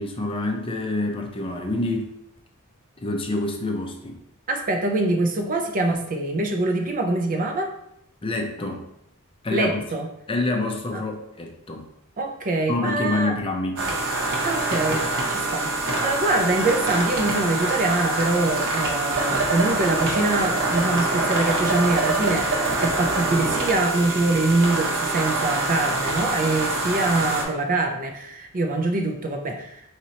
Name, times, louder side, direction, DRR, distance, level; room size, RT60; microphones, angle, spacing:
voice 1, 0.0-2.1 3.0-4.2 8.2-8.9 9.4-9.8 10.3-11.9 12.7-13.8, left 2 dB, 25° left, 3 dB, 0.5 m, -27 dB
voice 2, 4.5-7.7 9.5-10.1 10.9-11.0 12.2-13.4 14.4-29.8, right 2 dB, 35° right, 4 dB, 0.5 m, -24 dB
sound 1, 13.8-27.4, right 2 dB, 60° right, 1.0 m, -25 dB
4.3 x 4.0 x 2.8 m, 0.79 s
head